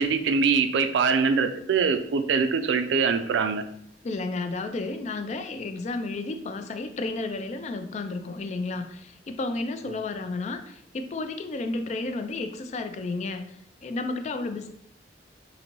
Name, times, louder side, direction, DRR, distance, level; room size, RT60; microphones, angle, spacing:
voice 1, 0.0-3.6, right 5 dB, 80° right, 9 dB, 0.4 m, -23 dB
voice 2, 4.0-13.6 13.8-14.7, left 3 dB, 40° left, 8 dB, 0.3 m, -32 dB
4.0 x 2.6 x 2.9 m, 0.71 s
head